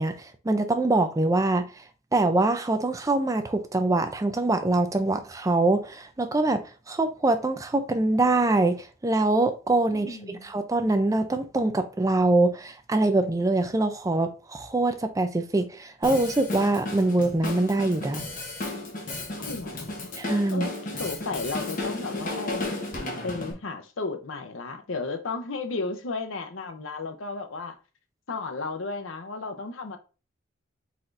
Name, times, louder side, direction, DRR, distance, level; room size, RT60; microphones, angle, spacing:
voice 1, 0.0-1.8 2.1-6.6 6.9-18.2 20.2-20.7, right 2 dB, 15° right, 0.4 m, -24 dB
voice 2, 9.9-10.5 19.4-20.1 20.5-22.7 23.2-27.8 28.3-30.0, left 3 dB, 70° left, 0.7 m, -34 dB
Drum kit, 16.0-23.5, left 2 dB, 40° left, 1.1 m, -34 dB
4.4 x 4.1 x 2.5 m
head